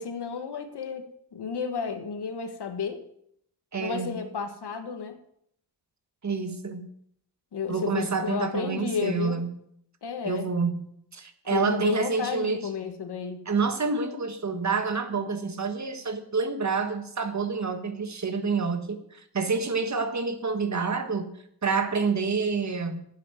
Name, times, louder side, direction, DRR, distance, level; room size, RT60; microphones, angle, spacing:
voice 1, 0.0-3.0 3.8-5.2 7.5-9.4 10.0-10.5 11.5-13.5, left 6 dB, 75° left, 7 dB, 1.7 m, -32 dB
voice 2, 3.7-4.2 6.2-6.9 7.7-9.6 10.2-10.8 11.1-12.7 13.5-21.3 21.6-23.0, right 4 dB, 45° right, 8 dB, 1.5 m, -28 dB
10.0 x 8.4 x 8.1 m, 0.70 s
wide cardioid pair, 100°, 40 cm